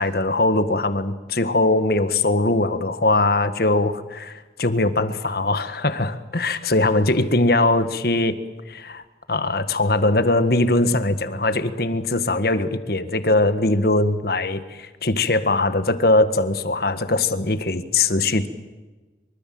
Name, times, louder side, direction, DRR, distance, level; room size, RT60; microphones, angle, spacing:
voice 1, 0.0-8.4 8.7-9.0 9.3-18.5, left 2 dB, 55° left, 10 dB, 1.7 m, -21 dB
24.5 x 24.5 x 7.9 m, 1.2 s
head